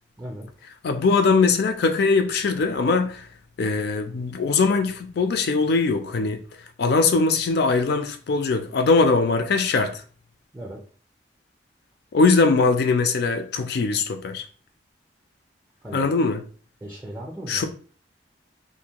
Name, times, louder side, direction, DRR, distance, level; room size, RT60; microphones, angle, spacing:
voice 1, 0.2-0.5 10.5-10.8 15.8-16.1 16.8-17.6, right 1 dB, 10° right, 0.4 m, -37 dB
voice 2, 0.8-3.3 3.6-6.4 6.8-10.0 12.1-14.4 15.9-16.4 17.5-17.6, left 4 dB, 60° left, 0.4 m, -21 dB
2.6 x 2.1 x 2.9 m
head